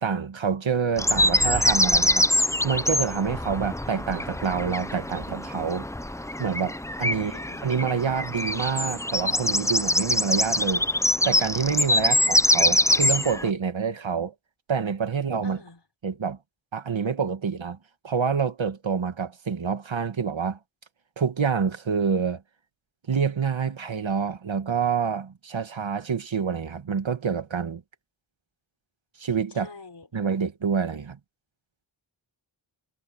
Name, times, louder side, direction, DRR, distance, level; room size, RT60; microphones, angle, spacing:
voice 1, 0.0-2.3 2.6-5.9 6.4-10.8 11.2-14.3 14.7-15.6 16.0-16.4 16.7-17.8 18.0-20.6 21.2-22.4 23.1-27.8 29.2-29.7 30.1-31.2, right 6 dB, 70° right, 1.9 m, -27 dB
sound 1, 1.0-13.5, left 1 dB, 5° left, 0.6 m, -24 dB
voice 2, 7.1-7.7 15.4-15.8 29.5-30.1, left 4 dB, 55° left, 5.7 m, -45 dB
wide cardioid pair, 70°, 48 cm